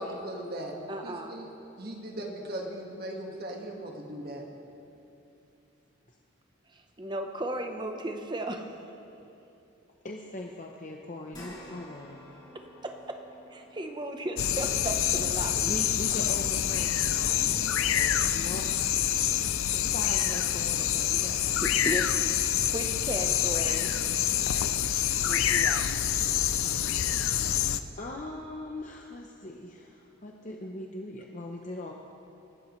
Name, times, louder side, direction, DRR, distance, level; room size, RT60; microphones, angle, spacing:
voice 1, 0.0-0.7 1.0-1.5 1.8-4.4, right 1 dB, 50° right, 1 dB, 1.6 m, -38 dB
voice 2, 0.9-1.3 7.0-8.7 12.5-13.2 13.5-15.6 21.6-22.1 22.7-23.9 25.2-25.8, right 1 dB, 20° right, 5 dB, 0.8 m, -35 dB
voice 3, 10.0-12.2 15.5-18.7 19.4-21.4 28.0-31.9, left 1 dB, 35° left, 1 dB, 0.7 m, -40 dB
sound 1, 11.3-19.9 20.4-20.5 21.9-22.0, equal, 20° left, 3.3 m, -54 dB
sound 2, 14.4-27.8, left 10 dB, 85° left, 0.5 m, -27 dB
24.5 x 12.5 x 3.2 m, 2.8 s
head